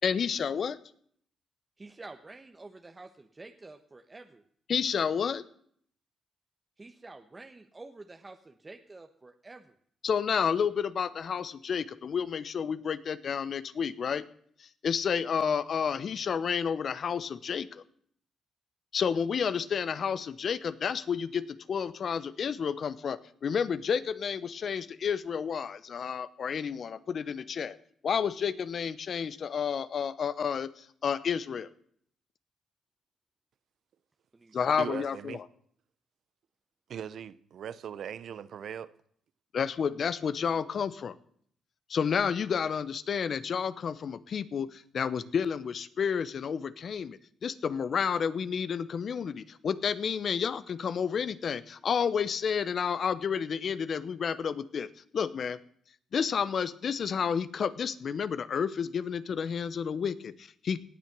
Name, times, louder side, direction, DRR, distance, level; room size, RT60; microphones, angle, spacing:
voice 1, 0.0-0.8 4.7-5.4 10.0-14.2 14.8-17.8 18.9-27.8 28.0-31.7 34.5-35.4 39.5-41.1 41.9-54.9 55.1-55.6 56.1-60.8, left 7 dB, 60° left, 0.9 m, -30 dB
voice 2, 1.8-4.4 6.8-9.7 34.3-34.9, right 3 dB, 30° right, 1.1 m, -49 dB
voice 3, 34.8-35.4 36.9-38.9, right 8 dB, 70° right, 0.8 m, -39 dB
18.0 x 8.6 x 6.1 m
supercardioid pair, 55°, 0 cm